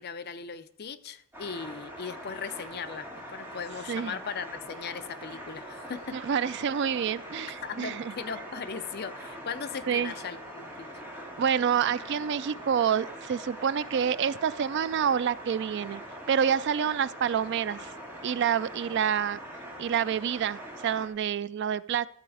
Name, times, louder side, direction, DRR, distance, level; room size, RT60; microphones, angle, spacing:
voice 1, 0.0-6.2 7.6-10.9, left 6 dB, 50° left, 11 dB, 0.6 m, -38 dB
sound 1, 1.3-21.1, equal, 10° right, 2.0 m, -43 dB
voice 2, 6.1-8.1 9.9-10.1 11.4-16.0 16.3-17.9 18.2-19.4 19.8-22.1, right 8 dB, 55° right, 18 dB, 0.3 m, -28 dB
13.0 x 7.9 x 4.8 m, 0.67 s
head